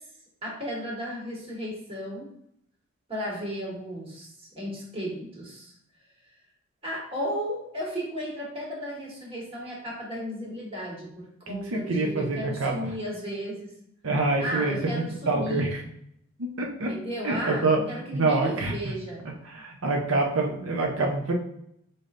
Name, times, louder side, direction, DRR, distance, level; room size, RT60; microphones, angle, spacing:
voice 1, 0.4-2.3 3.1-5.7 6.8-13.7 14.4-15.7 16.9-19.2, equal, 25° right, -3 dB, 1.5 m, -34 dB
voice 2, 11.5-12.7 14.0-15.8 16.4-16.9 17.2-17.8 18.1-18.8 19.4-21.3, right 3 dB, 90° right, 1 dB, 0.7 m, -26 dB
5.3 x 3.9 x 2.5 m, 0.74 s
head